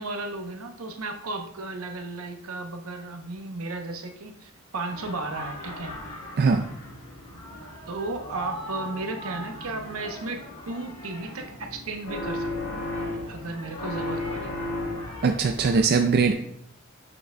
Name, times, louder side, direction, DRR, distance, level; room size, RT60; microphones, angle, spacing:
voice 1, 0.0-6.0 7.9-12.5 13.1-14.7, right 2 dB, 75° right, 5 dB, 0.9 m, -34 dB
sound 1, 4.9-15.8, left 1 dB, 30° left, 1.9 m, -41 dB
sound 2, 12.0-13.5 13.8-15.3, left 2 dB, 60° left, 1.2 m, -32 dB
voice 2, 15.2-16.3, right 4 dB, 50° right, 5 dB, 0.4 m, -21 dB
7.3 x 6.6 x 2.3 m, 0.70 s
head